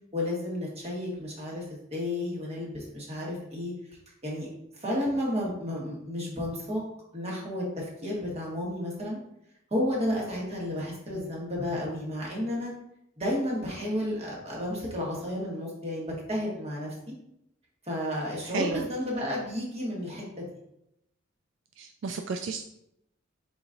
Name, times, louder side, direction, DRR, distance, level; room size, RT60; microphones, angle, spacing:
voice 1, 0.1-1.6 1.9-3.7 4.2-4.5 4.7-6.8 7.1-9.2 9.7-12.7 13.2-16.9 17.8-20.5, left 1 dB, 35° right, -3 dB, 1.4 m, -32 dB
voice 2, 18.4-18.9 21.8-22.6, right 4 dB, 70° right, 5 dB, 0.3 m, -32 dB
4.6 x 4.0 x 2.5 m, 0.80 s
head